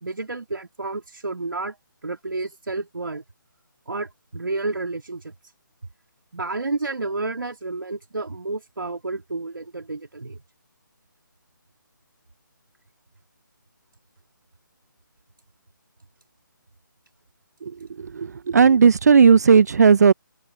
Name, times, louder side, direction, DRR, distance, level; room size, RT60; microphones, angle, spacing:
voice 1, 0.0-1.8 2.0-3.2 3.9-5.3 6.3-10.4, right 3 dB, 75° right, 2.5 m, -30 dB
voice 2, 18.0-20.1, right 6 dB, 50° right, 0.4 m, -15 dB
open air
figure-of-eight pair, 150°, 11 cm